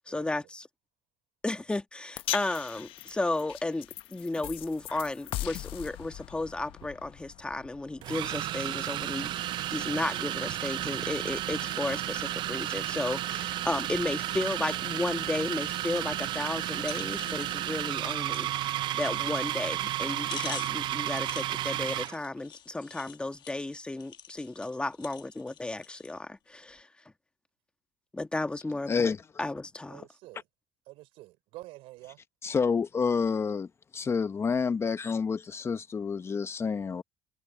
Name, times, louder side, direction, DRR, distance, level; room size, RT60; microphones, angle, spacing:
voice 1, 0.1-0.7 1.4-25.2 25.6-26.9 28.1-29.1 29.4-30.0, left 2 dB, 10° left, 1.5 m, -34 dB
sound 1, 2.2-8.5, left 15 dB, 70° left, 0.8 m, -40 dB
sound 2, 6.7-6.9 8.0-22.2, right 14 dB, 55° right, 0.4 m, -32 dB
sound 3, 15.6-16.1 16.4-16.5 16.8-26.2 26.7-26.8, left 9 dB, 50° left, 1.2 m, -47 dB
voice 2, 29.9-30.4 30.9-32.2, right 19 dB, 80° right, 4.9 m, -48 dB
voice 3, 32.4-33.7 33.9-37.0, left 5 dB, 25° left, 0.9 m, -28 dB
cardioid pair, 120°, 10 cm